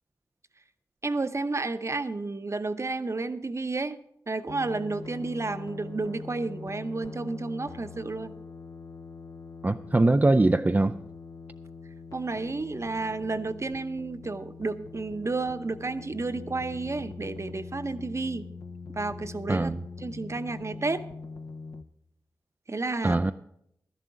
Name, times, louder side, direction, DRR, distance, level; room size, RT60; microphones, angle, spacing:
voice 1, 1.0-4.0 4.3-8.3 12.1-18.4 18.9-19.7 20.0-21.0 22.7-23.2, right 3 dB, 40° right, 0.8 m, -31 dB
sound 1, 4.5-21.8, left 4 dB, 55° left, 0.7 m, -43 dB
voice 2, 9.6-11.0 19.5-19.8 23.0-23.3, right 2 dB, 20° right, 0.4 m, -22 dB
12.5 x 11.0 x 4.9 m
cardioid pair, 50°, 7 cm